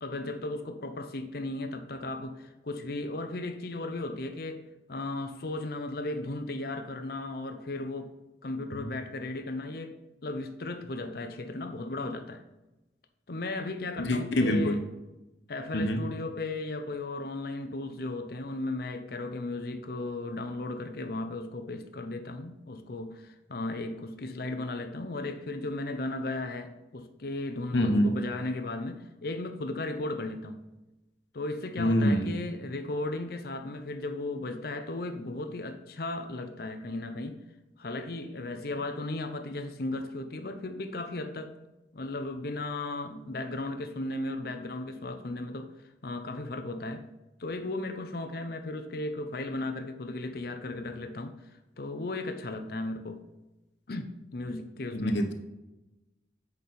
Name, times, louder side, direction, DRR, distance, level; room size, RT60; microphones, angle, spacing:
voice 1, 0.0-4.6 4.9-8.1 8.4-9.9 10.2-12.4 13.3-14.8 15.5-30.6 31.3-37.4 37.8-41.5 41.9-45.7 46.0-47.0 47.4-53.2 53.9-55.2, left 2 dB, 55° left, 7 dB, 0.7 m, -36 dB
voice 2, 14.0-14.8 15.7-16.0 27.7-28.2 31.8-32.3 54.9-55.3, equal, 80° left, 4 dB, 1.1 m, -25 dB
8.2 x 5.4 x 4.3 m, 1.0 s
head